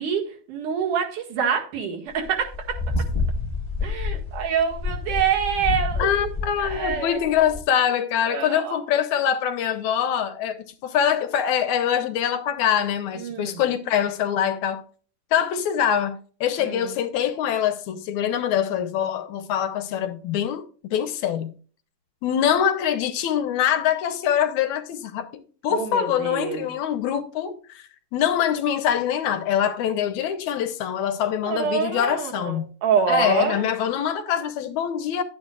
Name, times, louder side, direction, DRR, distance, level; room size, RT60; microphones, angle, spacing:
voice 1, 0.0-2.8 3.8-6.1 6.6-7.2 8.3-8.8 13.2-13.6 16.6-16.9 25.7-26.7 31.4-33.6, right 7 dB, 75° right, 3.3 m, -26 dB
sound 1, 2.2-7.6, left 4 dB, 25° left, 0.6 m, -29 dB
voice 2, 6.0-14.8 15.3-21.5 22.2-32.7 33.1-35.2, left 9 dB, 75° left, 2.0 m, -24 dB
11.0 x 9.4 x 2.4 m
omnidirectional pair, 3.7 m